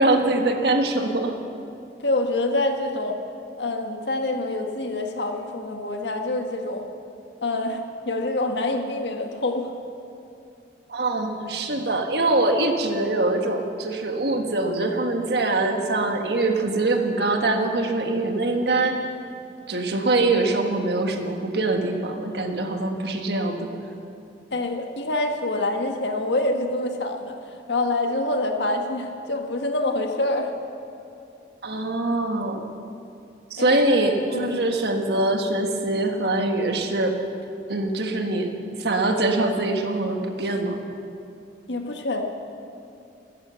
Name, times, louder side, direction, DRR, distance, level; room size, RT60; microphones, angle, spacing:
voice 1, 0.0-1.3 10.9-18.9 19.7-23.7 31.6-32.6 33.5-37.1 37.7-38.5 38.8-40.8, right 2 dB, 60° right, 4 dB, 1.5 m, -23 dB
voice 2, 2.0-3.2 3.6-6.9 7.4-9.7 24.5-30.5 33.6-33.8 34.3-34.6 41.7-42.2, left 2 dB, 75° left, 4 dB, 1.6 m, -26 dB
14.5 x 13.5 x 7.0 m, 2.7 s
head